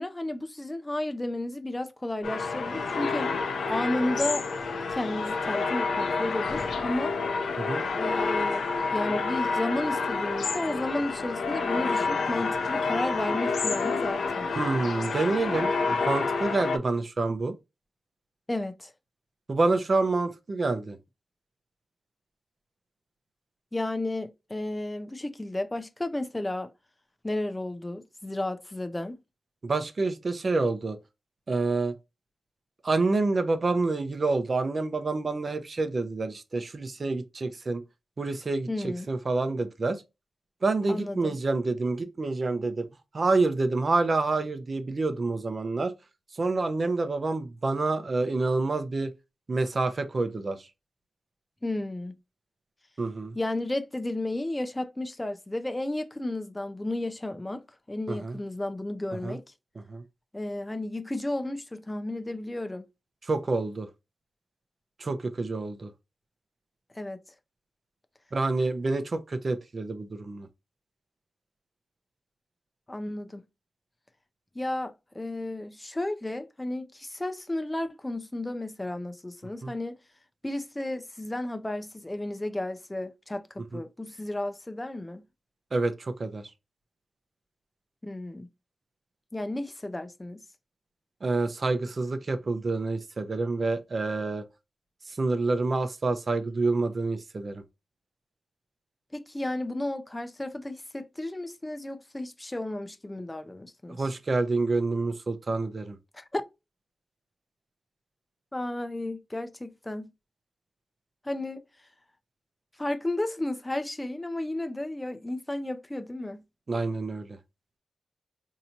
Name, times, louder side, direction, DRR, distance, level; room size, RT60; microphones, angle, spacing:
voice 1, 0.0-3.3 3.7-4.5 4.9-7.2 7.9-8.7 8.9-14.5 18.5-18.9 23.7-26.7 27.2-29.2 38.7-39.1 40.9-41.4 51.6-52.1 53.3-57.6 57.9-59.4 60.3-62.9 67.0-67.2 72.9-73.4 74.6-80.0 80.4-85.2 88.0-88.5 89.3-90.4 99.1-104.1 106.1-106.4 108.5-110.1 111.2-111.6 112.8-116.4, left 1 dB, 15° left, 0.5 m, -33 dB
sound 1, 2.2-16.8, left 4 dB, 80° left, 0.6 m, -29 dB
voice 2, 14.6-17.5 19.5-21.0 29.6-31.0 31.5-31.9 32.8-37.8 38.2-38.7 39.1-40.0 40.6-42.9 43.1-45.9 46.4-49.1 49.5-50.6 53.0-53.3 58.1-58.4 59.2-59.4 59.9-60.0 63.3-63.9 65.0-65.9 68.3-70.5 79.6-79.7 83.7-83.8 85.7-86.5 91.2-94.4 95.2-97.6 104.0-106.0 116.7-117.3, right 3 dB, 45° right, 0.6 m, -27 dB
4.4 x 2.8 x 2.6 m
wide cardioid pair, 85°, 0 cm